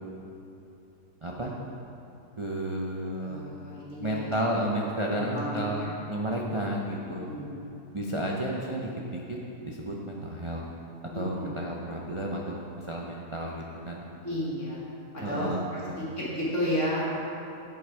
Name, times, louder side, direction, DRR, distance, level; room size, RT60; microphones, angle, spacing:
voice 1, 1.2-1.5 2.4-3.4 4.0-7.3 7.9-9.4 9.6-10.6 11.1-14.0 15.2-16.0, right 1 dB, 55° right, -3 dB, 0.3 m, -32 dB
voice 2, 3.2-4.4 5.1-5.9 7.2-7.8 11.1-11.5 14.2-14.9 15.1-17.2, equal, 45° left, -7 dB, 1.7 m, -32 dB
8.6 x 7.8 x 4.7 m, 2.9 s
omnidirectional pair, 1.8 m